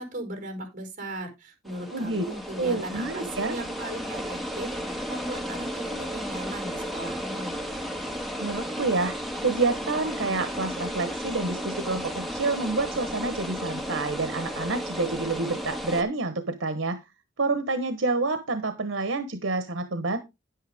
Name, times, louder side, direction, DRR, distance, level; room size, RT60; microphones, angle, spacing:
voice 1, 0.0-7.6, right 1 dB, 45° right, 5 dB, 4.9 m, -38 dB
sound 1, 1.7-16.0, equal, ahead, 1.7 m, -34 dB
voice 2, 1.9-2.2 2.6-3.5 8.4-9.2 9.4-17.0 17.4-20.2, right 3 dB, 80° right, 10 dB, 1.1 m, -28 dB
10.5 x 8.9 x 3.5 m, 0.24 s
head